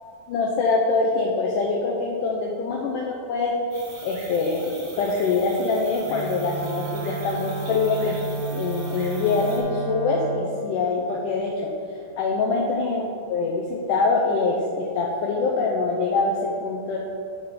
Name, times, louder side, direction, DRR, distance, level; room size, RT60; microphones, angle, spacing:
voice 1, 0.0-3.5 4.0-8.2 8.5-11.7 12.2-13.0 13.3-17.0, left 4 dB, 75° left, -1 dB, 2.0 m, -24 dB
sound 1, 3.7-9.6, right 2 dB, 50° right, 2.2 m, -43 dB
Wind instrument woodwind instrument, 6.0-10.5, right 4 dB, 80° right, 1.8 m, -32 dB
10.5 x 3.6 x 5.9 m, 2.4 s
omnidirectional pair, 4.1 m